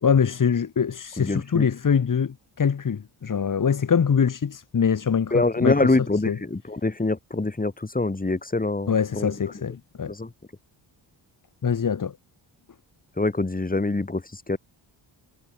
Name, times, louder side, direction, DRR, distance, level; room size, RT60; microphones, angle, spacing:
voice 1, 0.0-6.0 6.2-6.4 8.9-10.1 11.6-12.2, left 7 dB, 45° left, 1.9 m, -23 dB
voice 2, 1.2-1.7 5.3-9.3 10.1-10.3 13.2-14.6, left 2 dB, 20° left, 4.3 m, -25 dB
wide cardioid pair, 140°, 46 cm